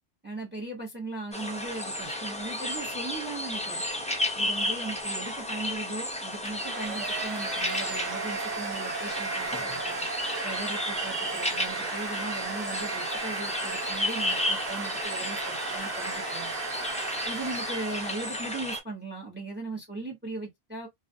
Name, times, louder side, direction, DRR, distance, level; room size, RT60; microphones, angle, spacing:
voice 1, 0.2-3.8 4.3-10.0 10.4-16.5 17.2-20.9, right 3 dB, 10° right, 0.8 m, -38 dB
sound 1, 1.3-18.8, left 1 dB, 10° left, 0.3 m, -33 dB
Domestic sounds home sounds, 6.5-18.6, right 4 dB, 50° right, 0.9 m, -35 dB
2.3 x 2.2 x 2.5 m
omnidirectional pair, 1.0 m